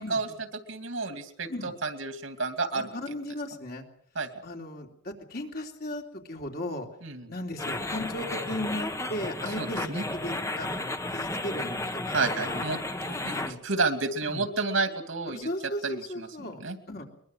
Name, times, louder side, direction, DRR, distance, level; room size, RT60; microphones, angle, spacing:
voice 1, 0.0-2.9 4.1-4.3 7.0-7.3 9.6-10.0 12.1-12.8 13.1-15.5 15.8-16.3 16.6-16.8, right 3 dB, 80° right, 8 dB, 2.6 m, -31 dB
voice 2, 2.7-3.8 4.4-6.9 7.3-12.7 13.3-13.6 14.3-14.4 15.3-16.6 16.9-17.1, left 1 dB, 50° left, 2 dB, 3.3 m, -36 dB
sound 1, 7.6-13.5, left 2 dB, 15° left, 1.2 m, -33 dB
22.5 x 22.0 x 6.3 m, 0.66 s
head